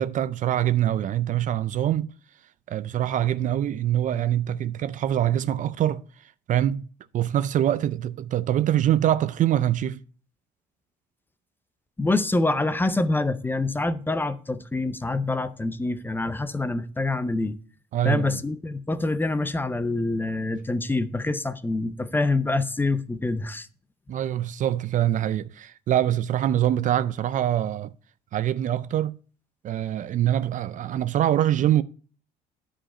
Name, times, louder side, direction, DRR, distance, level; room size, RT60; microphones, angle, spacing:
voice 1, 0.0-2.1 2.7-6.0 6.5-6.9 7.1-10.0 17.9-18.4 24.1-27.9 28.3-29.2 29.6-31.8, right 11 dB, 50° right, 0.4 m, -24 dB
voice 2, 12.0-17.5 18.0-23.7, left 2 dB, 10° left, 0.5 m, -26 dB
10.0 x 5.0 x 4.2 m
cardioid pair, 110°, 17 cm